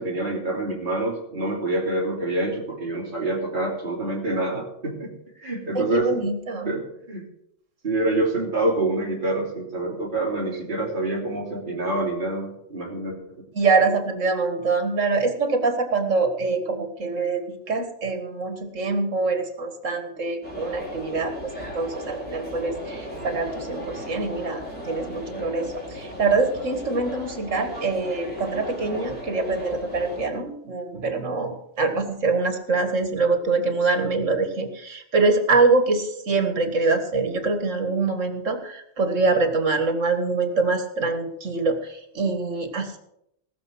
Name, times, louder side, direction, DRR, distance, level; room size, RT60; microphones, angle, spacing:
voice 1, 0.0-5.1 5.4-6.1 6.6-6.8 7.1-7.2 7.8-13.2, right 2 dB, 40° right, -4 dB, 3.0 m, -26 dB
voice 2, 5.7-6.7 13.5-43.0, right 3 dB, 75° right, 7 dB, 2.1 m, -24 dB
sound 1, 20.4-30.3, equal, 5° left, 3.9 m, -36 dB
19.0 x 6.8 x 6.2 m, 0.77 s
omnidirectional pair, 1.3 m